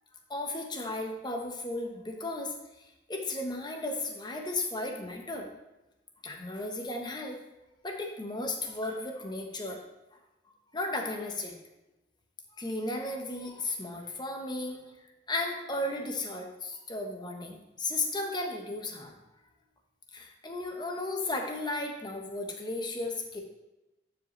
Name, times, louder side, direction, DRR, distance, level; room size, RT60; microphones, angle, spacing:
voice 1, 0.3-2.6 3.1-5.5 6.2-7.4 7.8-9.8 10.7-11.5 12.6-14.8 15.3-19.1 20.1-23.4, left 2 dB, 25° left, 2 dB, 1.1 m, -34 dB
12.5 x 5.0 x 3.2 m, 0.98 s
head